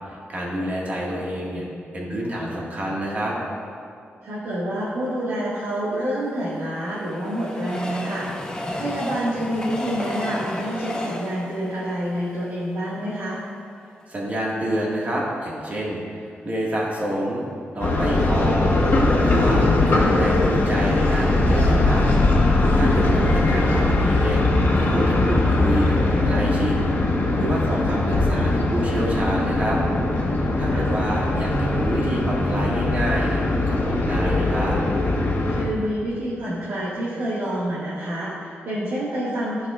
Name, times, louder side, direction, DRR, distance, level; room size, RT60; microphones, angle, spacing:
voice 1, 0.1-1.7 1.9-3.4 14.1-16.0 16.4-17.4 17.7-22.0 22.7-24.4 24.8-26.8 27.3-29.8 30.6-33.4 33.7-34.8, right 1 dB, 40° right, -4 dB, 1.7 m, -28 dB
voice 2, 4.2-13.4 23.0-23.2 30.7-30.9 35.5-39.7, equal, 75° right, -10 dB, 1.8 m, -28 dB
Train, 5.9-13.2 13.7-13.8 14.0-14.1, left 1 dB, 20° left, 0.6 m, -33 dB
sound 1, 17.8-35.6, left 2 dB, 60° left, 1.2 m, -20 dB
13.0 x 5.5 x 2.4 m, 2.3 s
wide cardioid pair, 120°, 4 cm